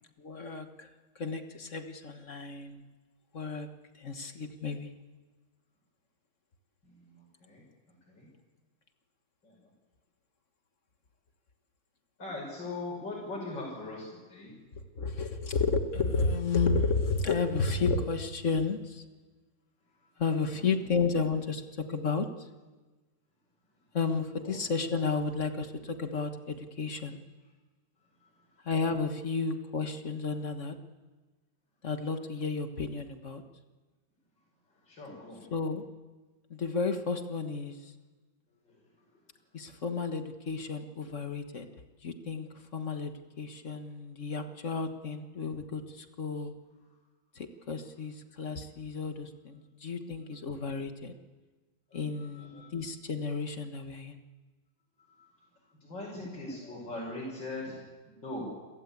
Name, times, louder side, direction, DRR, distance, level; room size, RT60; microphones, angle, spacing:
voice 1, 0.2-0.9 1.1-2.8 3.3-3.7 3.9-4.9 14.7-19.0 20.2-22.5 23.9-27.2 28.6-30.7 31.8-33.4 35.5-35.8 36.5-37.9 39.5-41.6 42.0-46.5 47.3-51.1 51.9-54.2, left 4 dB, 40° left, 7 dB, 1.5 m, -32 dB
voice 2, 6.8-7.6 8.1-8.3 9.4-9.7 12.2-14.6 20.0-20.1 20.5-20.7 24.4-24.6 28.2-28.5 34.7-35.5 38.6-39.1 39.6-39.7 51.9-52.7 55.0-55.3 55.6-58.5, left 2 dB, 55° left, -4 dB, 6.5 m, -41 dB
29.5 x 15.0 x 8.5 m, 1.3 s
omnidirectional pair, 2.3 m